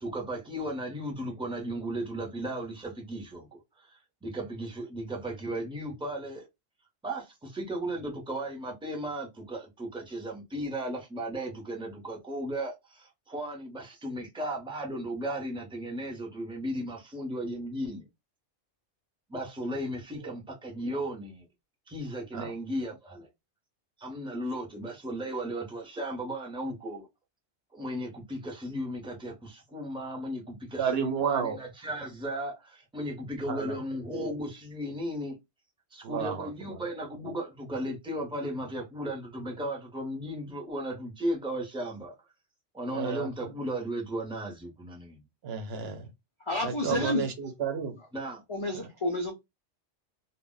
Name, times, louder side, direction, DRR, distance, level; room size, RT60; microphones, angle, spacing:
voice 1, 0.0-6.5 7.0-18.0 19.3-21.5 21.9-23.3 24.0-27.1 27.7-35.4 35.9-42.2 42.7-45.2 48.1-48.4, right 1 dB, 5° right, 0.5 m, -35 dB
voice 2, 30.8-31.6 33.5-33.8 36.0-36.8 42.9-43.5 45.4-46.1 46.6-47.3 47.6-48.0, right 7 dB, 65° right, 0.8 m, -32 dB
voice 3, 46.4-47.3 48.0-48.1 48.5-49.3, left 2 dB, 50° left, 0.3 m, -30 dB
2.1 x 2.1 x 3.6 m
omnidirectional pair, 1.2 m